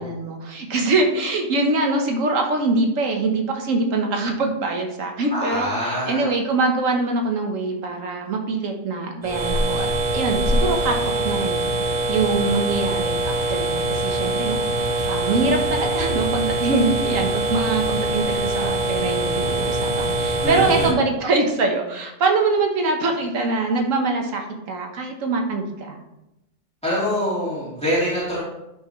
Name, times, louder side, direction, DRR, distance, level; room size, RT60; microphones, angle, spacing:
voice 1, 0.0-9.9 10.1-11.0 11.2-11.6 12.1-26.0, right 3 dB, 80° right, 2 dB, 1.5 m, -23 dB
voice 2, 5.3-6.3 20.4-21.0 26.8-28.4, equal, 5° left, -10 dB, 3.1 m, -24 dB
sound 1, 9.2-20.9, right 1 dB, 40° right, 1.0 m, -23 dB
10.0 x 5.7 x 3.2 m, 0.91 s
omnidirectional pair, 1.3 m